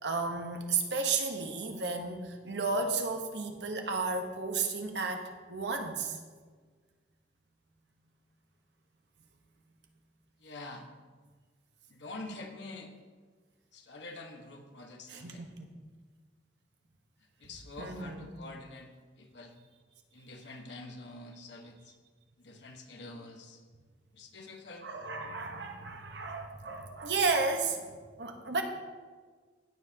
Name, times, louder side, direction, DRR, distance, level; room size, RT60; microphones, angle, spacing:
voice 1, 0.0-6.2 15.1-15.8 17.8-18.3 24.8-28.6, right 4 dB, 75° right, 4 dB, 1.1 m, -33 dB
voice 2, 10.4-10.9 11.9-12.9 13.7-15.5 17.4-19.5 20.1-21.9 22.4-23.6 24.1-24.9, left 2 dB, 85° left, 3 dB, 1.3 m, -46 dB
16.0 x 7.2 x 2.9 m, 1.5 s
head